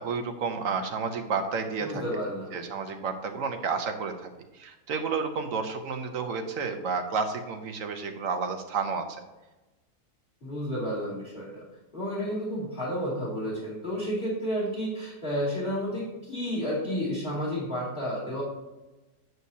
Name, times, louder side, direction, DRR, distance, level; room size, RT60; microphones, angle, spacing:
voice 1, 0.0-2.0 2.5-4.3 4.6-9.1, right 5 dB, 60° right, 6 dB, 1.2 m, -31 dB
voice 2, 1.8-2.6 10.4-11.6 11.9-18.4, equal, 35° left, -7 dB, 2.9 m, -31 dB
9.2 x 7.9 x 2.8 m, 1.1 s
omnidirectional pair, 1.7 m